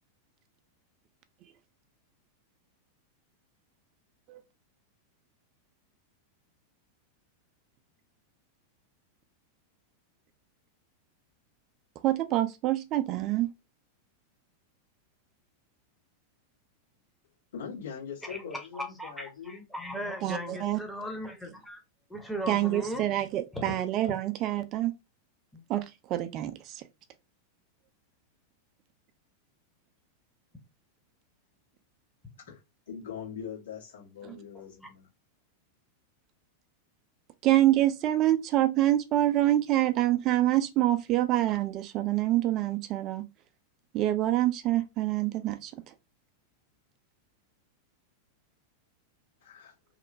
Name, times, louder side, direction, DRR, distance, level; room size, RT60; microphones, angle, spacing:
voice 1, 12.0-13.5 20.2-20.8 22.5-24.9 25.7-26.8 34.3-34.4 37.4-43.3 43.9-45.7, right 14 dB, 35° right, 0.3 m, -26 dB
voice 2, 17.5-19.6 32.4-32.6 32.9-35.1 49.4-49.7, left 7 dB, 65° left, 1.5 m, -42 dB
voice 3, 18.2-21.8 22.1-23.1 23.5-23.8 24.0-24.1 25.5-25.6 34.2-34.3 34.8-34.9, equal, 5° left, 0.7 m, -38 dB
3.0 x 2.1 x 2.5 m
figure-of-eight pair, 90°, 0 cm